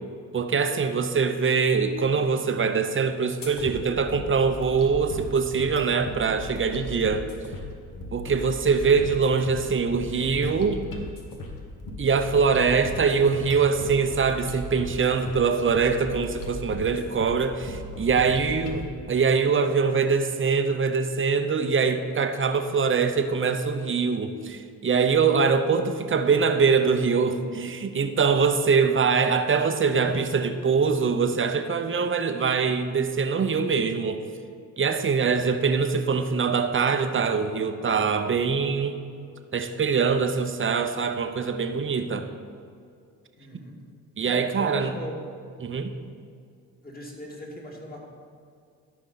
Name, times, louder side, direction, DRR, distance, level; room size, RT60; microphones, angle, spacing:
voice 1, 0.3-7.2 8.1-10.8 12.0-34.2 34.8-39.0 39.5-42.3 44.2-44.9 45.6-45.9, right 5 dB, 30° right, 8 dB, 0.8 m, -23 dB
sound 1, 3.4-18.8, left 1 dB, 55° left, 1.5 m, -37 dB
voice 2, 43.4-43.8 44.2-45.1 46.8-48.0, equal, 25° left, -1 dB, 2.2 m, -38 dB
13.0 x 5.3 x 4.0 m, 2.3 s
supercardioid pair, 60°, 39 cm